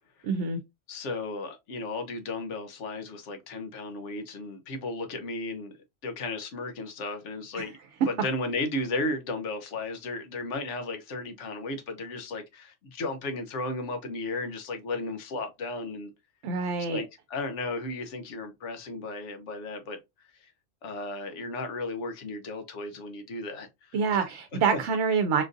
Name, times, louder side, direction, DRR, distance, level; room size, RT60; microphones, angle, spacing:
voice 1, 0.2-0.6 7.5-7.7 16.4-17.0 23.9-25.4, right 5 dB, 75° right, 0.8 m, -26 dB
voice 2, 0.9-5.7 6.0-7.8 8.1-16.1 16.9-20.0 20.4-20.5 20.8-24.3 24.7-24.8, left 2 dB, 75° left, 1.1 m, -34 dB
3.7 x 2.5 x 2.5 m
omnidirectional pair, 1.2 m